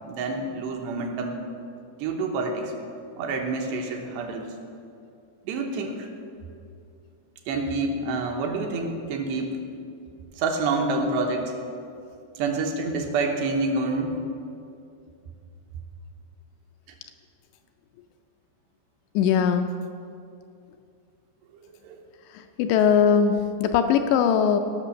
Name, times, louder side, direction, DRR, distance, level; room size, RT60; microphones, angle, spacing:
voice 1, 0.0-1.4 2.0-2.7 3.2-4.5 5.4-6.1 7.5-9.6 10.4-11.5 12.4-14.2 21.8-22.0, right 3 dB, 75° right, 2 dB, 3.0 m, -27 dB
voice 2, 19.2-19.7 22.3-24.6, left 7 dB, 85° left, 6 dB, 2.6 m, -20 dB
17.0 x 6.1 x 6.4 m, 2.5 s
omnidirectional pair, 5.2 m